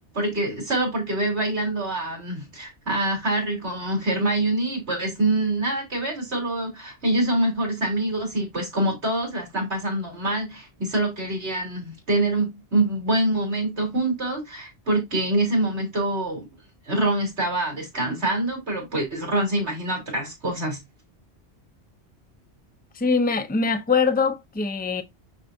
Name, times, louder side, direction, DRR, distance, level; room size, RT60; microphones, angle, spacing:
voice 1, 0.1-16.5 16.9-20.8, right 2 dB, 70° right, 3.9 m, -25 dB
voice 2, 22.9-25.0, left 4 dB, 10° left, 0.6 m, -23 dB
12.0 x 4.1 x 2.6 m
omnidirectional pair, 1.2 m